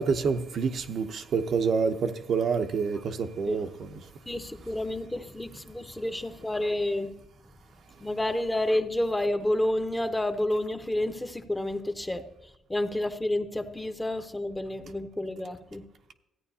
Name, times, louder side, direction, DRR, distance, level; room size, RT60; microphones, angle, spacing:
voice 1, 0.0-4.0, right 5 dB, 60° right, 0.7 m, -27 dB
voice 2, 4.3-7.1 8.0-12.2 12.7-15.8, left 1 dB, 10° left, 0.8 m, -29 dB
14.0 x 9.0 x 2.8 m
cardioid pair, 90°, 0 cm